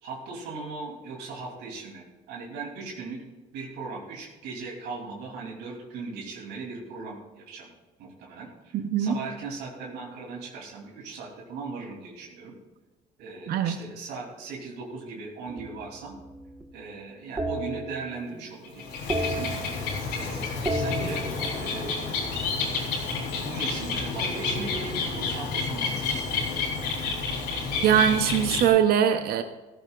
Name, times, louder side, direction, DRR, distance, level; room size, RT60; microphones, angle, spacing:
voice 1, 0.0-3.2 3.5-7.7 8.0-12.5 13.2-16.1 16.7-19.6 20.1-21.2 21.6-22.5 23.4-26.5, right 4 dB, 85° right, -3 dB, 3.2 m, -39 dB
voice 2, 8.7-9.2 13.5-13.8 27.8-29.4, right 9 dB, 65° right, 8 dB, 0.9 m, -22 dB
sound 1, 15.5-16.8 17.4-18.5 18.8-20.2 20.5-22.9 24.1-25.8, right 1 dB, 20° right, 1.4 m, -35 dB
Bird, 18.6-28.7, left 4 dB, 80° left, 4.0 m, -30 dB
16.5 x 14.0 x 2.5 m, 1.2 s
cardioid pair, 110°, 17 cm